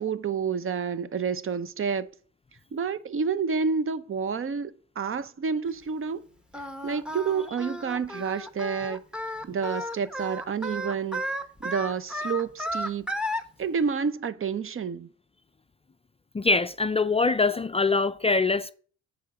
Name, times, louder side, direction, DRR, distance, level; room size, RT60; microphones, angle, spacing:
voice 1, 0.0-2.1 2.7-6.2 6.8-9.0 9.4-11.2 11.6-13.1 13.6-15.1, right 6 dB, 45° right, 0.8 m, -29 dB
Singing, 6.5-13.4, equal, 5° right, 1.2 m, -33 dB
voice 2, 16.3-18.7, left 3 dB, 20° left, 0.4 m, -23 dB
9.2 x 3.8 x 7.0 m
supercardioid pair, 70°, 31 cm